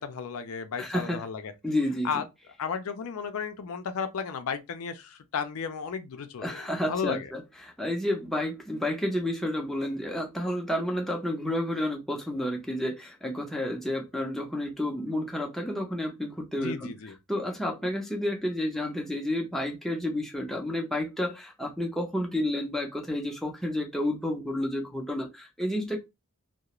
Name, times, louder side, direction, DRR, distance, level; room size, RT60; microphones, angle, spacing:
voice 1, 0.0-1.5 2.0-2.2 2.6-7.3 16.6-17.1, left 6 dB, 80° left, 0.4 m, -34 dB
voice 2, 0.8-1.2 1.6-2.1 6.4-16.9 17.3-26.0, left 1 dB, ahead, 0.4 m, -30 dB
2.3 x 2.0 x 2.9 m
head